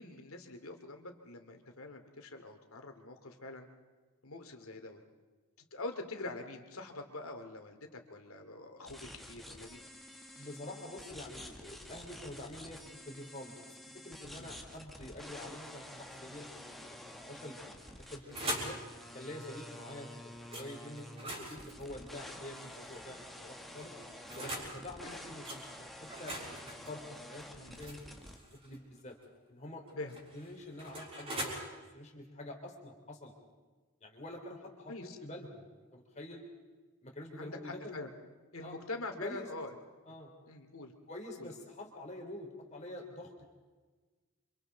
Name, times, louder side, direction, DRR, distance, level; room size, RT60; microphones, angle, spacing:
voice 1, 0.0-3.7 4.2-5.0 5.7-9.9 10.4-10.5 14.4-14.5 18.2-18.4 22.5-22.7 25.0-25.2 27.6-27.8 30.0-30.2 34.9-35.2 37.4-38.1 38.5-39.7 40.5-40.9 41.4-41.5, left 2 dB, 70° left, 5 dB, 2.6 m, -45 dB
sound 1, 8.9-28.4, left 1 dB, ahead, 1.6 m, -49 dB
voice 2, 10.4-17.8 18.1-18.8 19.1-24.0 24.3-28.2 28.5-29.2 29.5-30.0 30.3-31.6 31.9-33.3 34.0-36.4 37.0-38.0 38.6-38.7 39.2-39.5 40.0-40.3 41.1-43.3, left 1 dB, 30° left, 1 dB, 3.5 m, -47 dB
sound 2, 17.8-18.8 20.5-20.7 21.1-23.0 23.8-24.7 25.5-25.6 26.1-28.8 29.9-31.5, right 1 dB, 25° right, 6.2 m, -42 dB
30.0 x 26.0 x 4.0 m, 1.3 s
head